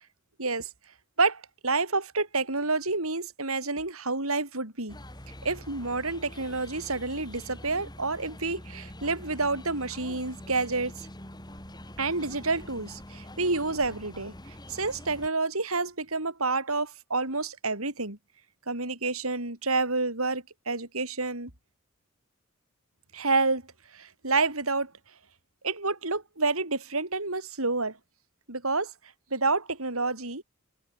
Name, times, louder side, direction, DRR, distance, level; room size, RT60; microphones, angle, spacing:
voice 1, 0.4-0.7 1.2-5.0 5.4-11.1 12.0-14.3 14.7-18.2 18.7-21.5 23.1-23.6 23.9-24.9 25.6-28.0 28.5-28.9 29.3-30.4, right 3 dB, 85° right, 6.4 m, -29 dB
sound 1, 4.9-15.3, left 1 dB, 20° left, 6.4 m, -45 dB
head